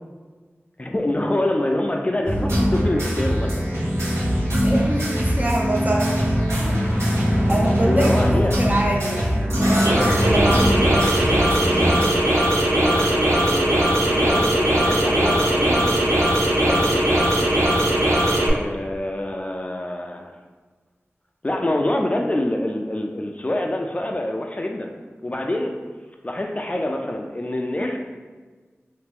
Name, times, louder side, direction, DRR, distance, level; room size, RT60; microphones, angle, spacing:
voice 1, 0.8-3.7 4.1-4.2 7.5-8.6 12.7-15.8 16.6-17.8 18.5-20.4 21.4-24.9 25.2-25.8 26.2-28.0, left 1 dB, 30° left, 2 dB, 0.3 m, -26 dB
sound 1, 2.3-12.0, equal, 65° right, 1.2 m, -21 dB
voice 2, 4.6-6.2 6.6-8.3 8.6-11.1, right 1 dB, 35° right, -1 dB, 0.6 m, -25 dB
sound 2, 9.6-18.5, right 1 dB, 90° right, 0.6 m, -19 dB
2.9 x 2.5 x 3.5 m, 1.4 s
wide cardioid pair, 45°, 5 cm